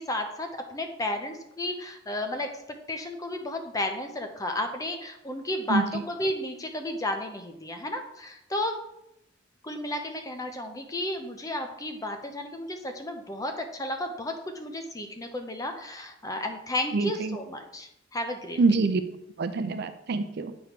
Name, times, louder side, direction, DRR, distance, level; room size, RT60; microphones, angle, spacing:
voice 1, 0.0-2.6 2.9-8.8 9.6-18.6, left 1 dB, 20° left, 5 dB, 0.6 m, -33 dB
voice 2, 16.9-17.4 18.6-19.0 19.4-20.5, right 3 dB, 60° right, 10 dB, 0.5 m, -25 dB
8.0 x 3.1 x 5.1 m, 0.81 s
head